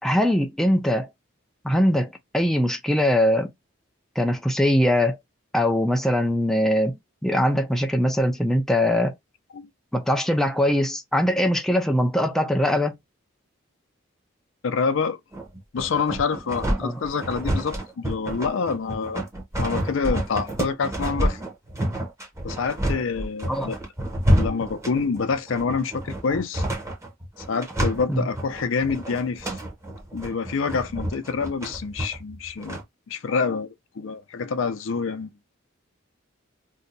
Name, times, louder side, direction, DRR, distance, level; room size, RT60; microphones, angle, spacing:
voice 1, 0.0-1.1 1.6-2.1 2.3-3.5 4.2-5.2 5.5-9.1 9.9-13.0 16.8-17.0 23.5-23.7 28.1-28.3, equal, ahead, 0.4 m, -22 dB
voice 2, 14.6-15.2 15.7-19.2 19.6-21.4 22.4-23.8 24.4-26.6 27.5-29.6 30.1-35.3, left 5 dB, 70° left, 0.5 m, -27 dB
sound 1, 15.3-32.8, equal, 15° right, 0.8 m, -28 dB
2.7 x 2.2 x 3.8 m
head